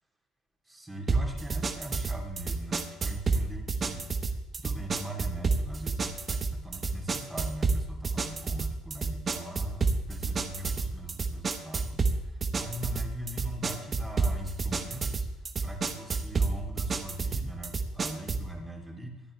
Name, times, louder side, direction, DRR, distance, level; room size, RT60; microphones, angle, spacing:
voice 1, 0.7-4.0 4.5-15.3 15.6-19.2, right 1 dB, 10° right, -1 dB, 3.3 m, -41 dB
sound 1, 1.1-18.5, right 4 dB, 35° right, 1.1 m, -30 dB
23.5 x 9.0 x 3.4 m, 1.0 s
supercardioid pair, 90°, 0 cm